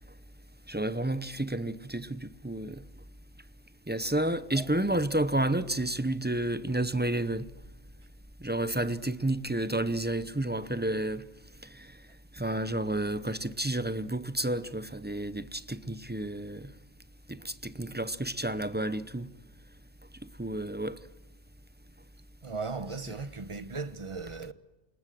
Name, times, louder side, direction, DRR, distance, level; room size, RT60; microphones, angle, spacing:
voice 1, 0.7-2.8 3.9-7.5 8.4-11.2 11.8-11.9 12.3-16.7 17.3-19.3 20.4-21.0, right 1 dB, 10° right, 0.6 m, -30 dB
voice 2, 4.5-4.9 22.4-24.5, right 4 dB, 30° right, 1.0 m, -37 dB
28.0 x 19.5 x 7.7 m
omnidirectional pair, 1.2 m